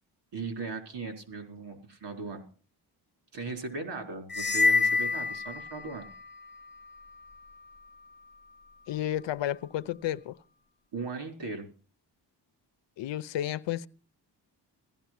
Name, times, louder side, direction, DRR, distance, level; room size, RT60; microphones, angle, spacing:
voice 1, 0.3-2.4 3.3-6.1 10.9-11.7, right 3 dB, 75° right, 4.4 m, -38 dB
sound 1, 4.3-6.2, left 4 dB, 25° left, 0.7 m, -26 dB
voice 2, 8.9-10.4 13.0-13.9, left 12 dB, 90° left, 0.8 m, -32 dB
16.5 x 12.5 x 6.0 m
cardioid pair, 100°, 42 cm